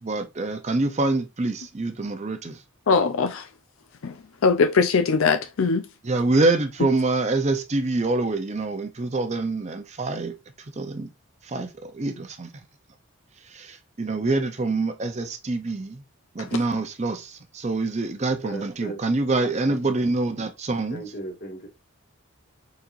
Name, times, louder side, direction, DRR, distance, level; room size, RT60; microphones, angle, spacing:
voice 1, 0.0-2.6 6.0-10.4 10.8-11.1 11.4-12.5 13.5-16.0 16.3-21.0, right 2 dB, 35° right, 0.6 m, -26 dB
voice 2, 2.9-3.5 4.0-4.2 4.4-5.8, left 4 dB, 75° left, 0.4 m, -21 dB
voice 3, 18.4-19.0 19.6-19.8 20.9-21.7, right 2 dB, 50° left, 1.8 m, -36 dB
4.4 x 4.0 x 2.5 m
head